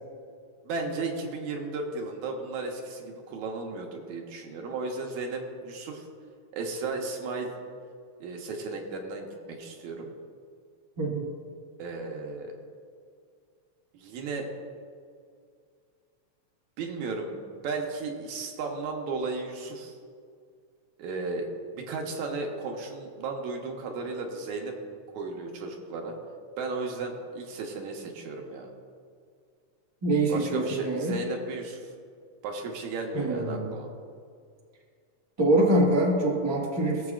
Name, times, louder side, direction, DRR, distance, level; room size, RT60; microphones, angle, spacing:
voice 1, 0.6-6.1 6.5-7.5 8.2-10.1 11.8-12.5 13.9-14.5 16.8-17.4 17.6-20.0 21.0-24.8 25.1-26.2 26.6-28.7 30.3-31.9 32.4-33.9, right 3 dB, 80° right, 2 dB, 2.3 m, -34 dB
voice 2, 11.0-11.3 30.0-31.2 33.1-33.7 35.4-37.0, right 1 dB, 20° right, -3 dB, 0.7 m, -24 dB
17.5 x 7.4 x 2.4 m, 2.2 s
omnidirectional pair, 3.4 m